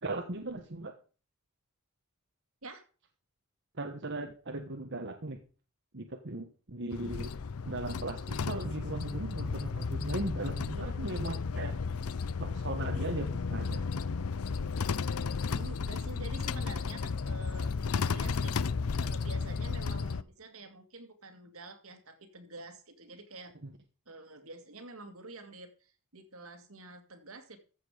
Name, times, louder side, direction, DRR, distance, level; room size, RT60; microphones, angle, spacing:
voice 1, 0.0-0.9 3.8-5.4 5.9-7.3 7.6-11.8 12.4-13.8 23.6-23.7, right 2 dB, 55° right, 4 dB, 1.3 m, -38 dB
sound 1, 6.9-20.2, left 5 dB, 75° left, 0.6 m, -33 dB
voice 2, 15.5-23.5 24.1-27.6, right 2 dB, 70° right, 8 dB, 2.3 m, -48 dB
14.5 x 7.8 x 5.1 m, 0.37 s
head